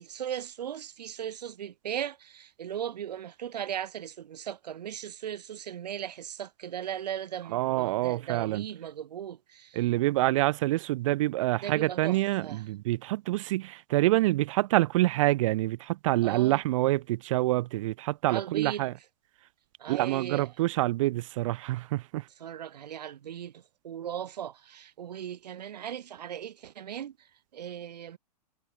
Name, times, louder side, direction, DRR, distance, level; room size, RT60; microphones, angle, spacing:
voice 1, 0.0-9.8 11.6-12.7 16.2-16.6 18.3-18.9 19.8-20.5 22.4-28.2, right 10 dB, 85° right, 2.5 m, -38 dB
voice 2, 7.5-8.6 9.7-18.9 19.9-22.2, right 17 dB, 55° right, 1.2 m, -26 dB
hypercardioid pair, 150°, 20 cm